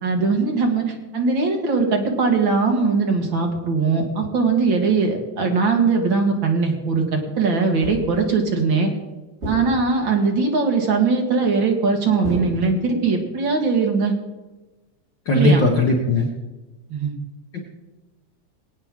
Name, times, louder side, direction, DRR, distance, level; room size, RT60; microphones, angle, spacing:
voice 1, 0.0-8.9 9.4-14.1 15.3-15.7 16.9-17.2, right 4 dB, 45° right, 2 dB, 1.9 m, -20 dB
sound 1, 7.8-8.3 9.4-10.2 12.2-13.1, right 1 dB, 20° right, 2.6 m, -32 dB
voice 2, 15.3-16.3, left 1 dB, 55° left, 0 dB, 1.3 m, -17 dB
21.0 x 8.9 x 3.6 m, 1.1 s
omnidirectional pair, 3.4 m